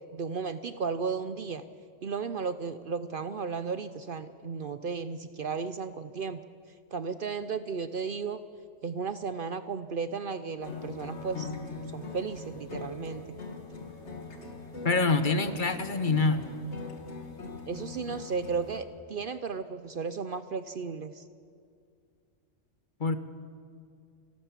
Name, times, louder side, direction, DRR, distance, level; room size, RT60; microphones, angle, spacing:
voice 1, 0.1-1.6 2.0-6.4 6.9-8.4 8.8-11.5 11.9-13.2 17.7-21.2, right 5 dB, 55° right, 12 dB, 0.7 m, -34 dB
sound 1, 10.6-18.8, left 3 dB, 65° left, 2.4 m, -41 dB
voice 2, 14.8-16.5 23.0-23.2, left 3 dB, 45° left, 11 dB, 1.0 m, -25 dB
29.0 x 12.5 x 7.3 m, 2.3 s
omnidirectional pair, 1.3 m